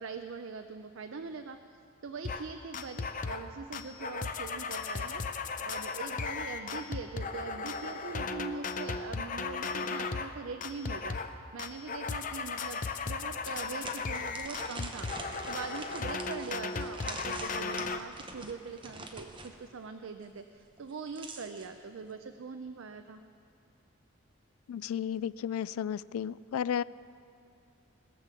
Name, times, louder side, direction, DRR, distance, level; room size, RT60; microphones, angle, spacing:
voice 1, 0.0-1.6 2.0-23.2, right 4 dB, 70° right, 7 dB, 0.5 m, -42 dB
sound 1, 2.2-2.5 2.7-3.5 3.7-10.3 10.6-11.3 11.6-18.0, left 4 dB, 40° left, 0.5 m, -36 dB
sound 2, 13.5-19.5 20.8-21.7, right 3 dB, 25° right, 0.9 m, -44 dB
voice 2, 24.7-26.8, left 8 dB, 90° left, 20 dB, 0.3 m, -33 dB
20.5 x 7.4 x 6.9 m, 2.6 s
head